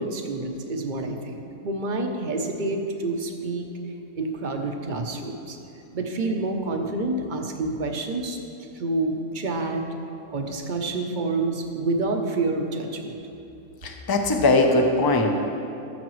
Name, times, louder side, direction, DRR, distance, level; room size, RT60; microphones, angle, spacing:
voice 1, 0.0-3.6 4.2-5.6 5.9-8.4 8.7-9.8 10.3-13.2, right 2 dB, 45° right, 4 dB, 0.7 m, -28 dB
voice 2, 13.8-15.4, left 2 dB, 25° left, 3 dB, 0.5 m, -20 dB
14.5 x 7.4 x 3.1 m, 2.9 s
omnidirectional pair, 1.5 m